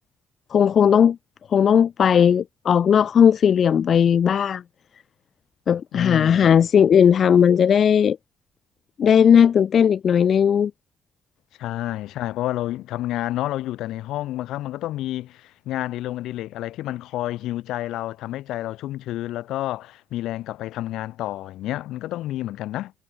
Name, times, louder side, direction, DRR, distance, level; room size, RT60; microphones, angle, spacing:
voice 1, 0.5-1.2 1.5-4.6 5.7-8.2 9.0-10.7, left 8 dB, 55° left, 0.7 m, -17 dB
voice 2, 5.9-6.6 11.6-22.9, left 15 dB, 90° left, 3.3 m, -29 dB
cardioid pair, 90°, 0 cm